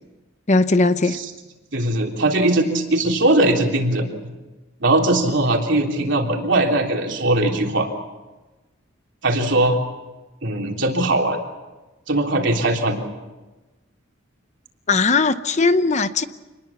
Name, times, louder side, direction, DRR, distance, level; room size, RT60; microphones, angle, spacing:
voice 1, 0.5-1.2 14.9-16.3, left 3 dB, 35° left, 12 dB, 0.8 m, -18 dB
voice 2, 1.7-4.1 4.8-7.9 9.2-9.8 10.4-11.4 12.1-13.0, right 2 dB, 60° right, 2 dB, 3.5 m, -20 dB
27.0 x 20.5 x 7.3 m, 1.2 s
head